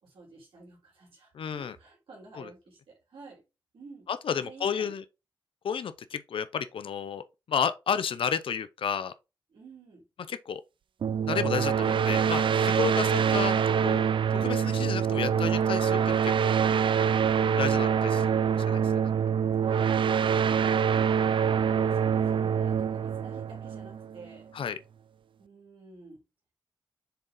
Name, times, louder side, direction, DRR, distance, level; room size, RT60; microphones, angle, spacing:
voice 1, 0.0-3.4 3.7-4.9 9.5-10.0 19.7-24.5 25.4-26.2, right 3 dB, 90° right, 3.3 m, -51 dB
voice 2, 1.3-1.8 2.3-2.5 4.1-5.0 5.6-9.1 10.3-10.6 11.3-14.1 14.3-16.6 17.6-18.9 24.5-24.8, left 7 dB, 80° left, 0.6 m, -32 dB
sound 1, 11.0-24.3, right 7 dB, 70° right, 0.4 m, -25 dB
6.7 x 3.9 x 3.7 m
cardioid pair, 40°, 9 cm